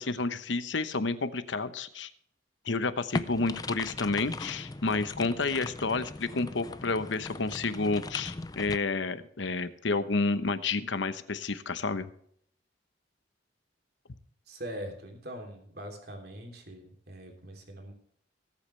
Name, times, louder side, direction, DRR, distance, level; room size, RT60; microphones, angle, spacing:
voice 1, 0.0-2.1 2.6-12.1, left 3 dB, 80° left, 12 dB, 1.0 m, -30 dB
sound 1, 3.1-8.8, left 3 dB, 20° left, 0.4 m, -39 dB
voice 2, 14.5-17.9, equal, 55° right, 3 dB, 3.3 m, -42 dB
20.0 x 8.5 x 3.3 m, 0.66 s
head